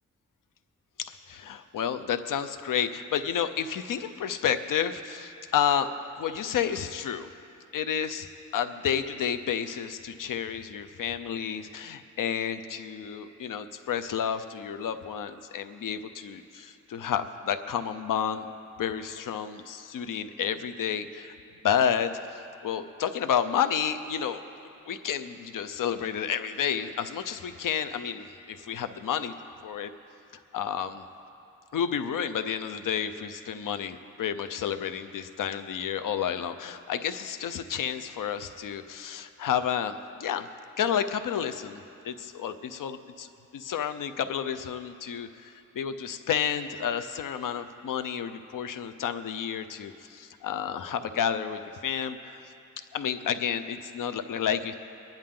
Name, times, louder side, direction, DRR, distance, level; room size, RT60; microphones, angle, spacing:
voice 1, 1.0-7.3 7.7-18.5 18.8-21.3 21.6-24.4 24.9-29.3 29.6-29.9 30.5-31.0 31.7-40.5 40.8-52.5 52.9-54.7, left 8 dB, 85° left, 10 dB, 0.7 m, -31 dB
23.5 x 10.5 x 3.8 m, 2.8 s
wide cardioid pair, 170°, 32 cm